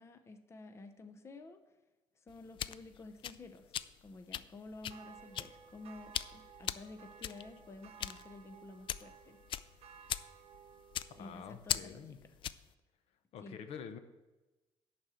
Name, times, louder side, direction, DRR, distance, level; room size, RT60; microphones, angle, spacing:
voice 1, 0.0-1.6 2.2-9.4 11.2-12.2 13.4-13.6, left 3 dB, 25° left, 7 dB, 0.7 m, -51 dB
sound 1, 2.3-12.7, left 10 dB, 50° left, 0.3 m, -41 dB
sound 2, 4.9-11.6, right 8 dB, 65° right, 0.8 m, -57 dB
voice 2, 11.1-12.2 13.3-14.0, left 7 dB, 70° left, 9 dB, 0.8 m, -47 dB
11.0 x 4.3 x 7.6 m, 1.1 s
cardioid pair, 130°, 11 cm